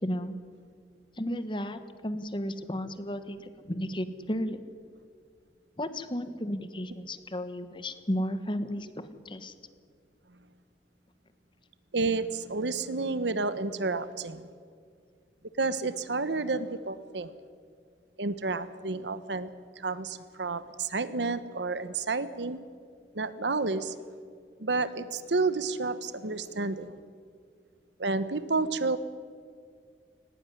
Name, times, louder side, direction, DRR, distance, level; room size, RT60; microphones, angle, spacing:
voice 1, 0.0-0.4 1.2-4.6 5.8-9.5, equal, 30° left, 11 dB, 1.3 m, -33 dB
voice 2, 11.9-14.5 15.6-17.3 18.2-19.5 19.8-22.6 23.1-23.9 24.6-26.9 28.0-29.0, right 3 dB, 85° right, 14 dB, 1.1 m, -30 dB
18.5 x 18.0 x 9.7 m, 2.1 s
head